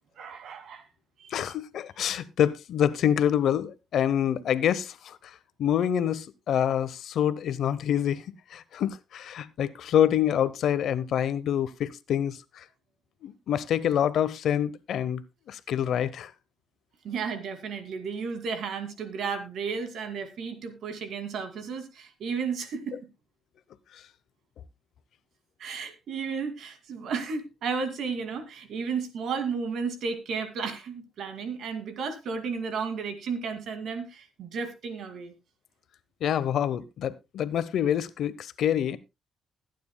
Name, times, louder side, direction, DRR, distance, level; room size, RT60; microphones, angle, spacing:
voice 1, 0.2-0.8 1.2-1.5 17.0-23.1 25.6-35.3, right 5 dB, 70° right, 2.3 m, -33 dB
voice 2, 1.3-5.3 5.6-8.3 8.5-12.6 13.2-15.2 15.5-16.3 23.9-24.0 36.2-39.0, left 10 dB, 70° left, 0.8 m, -26 dB
20.5 x 9.4 x 2.2 m
cardioid pair, 90°, 0 cm